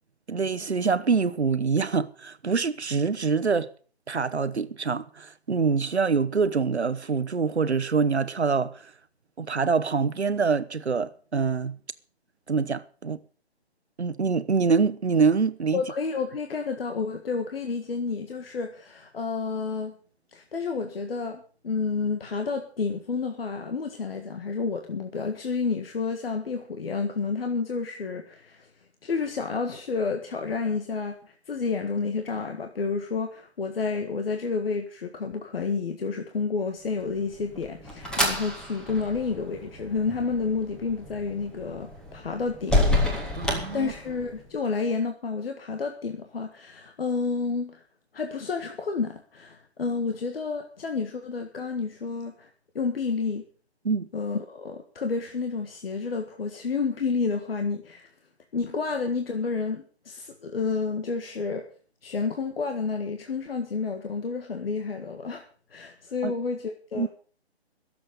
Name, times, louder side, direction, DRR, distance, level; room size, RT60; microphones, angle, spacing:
voice 1, 0.3-3.7 4.1-8.9 9.4-11.8 12.5-13.2 14.0-15.8 43.4-43.9 53.8-54.1 66.2-66.3 66.9-67.1, right 5 dB, 85° right, 1.1 m, -25 dB
voice 2, 15.7-19.9 20.3-28.7 29.0-42.8 43.7-47.8 48.1-52.5 52.8-53.4 54.1-58.1 58.5-61.7 62.0-65.4 65.7-67.1, left 4 dB, 60° left, 1.7 m, -30 dB
sound 1, 37.1-44.5, left 1 dB, ahead, 2.1 m, -29 dB
21.5 x 7.8 x 5.3 m
figure-of-eight pair, 140°, 32 cm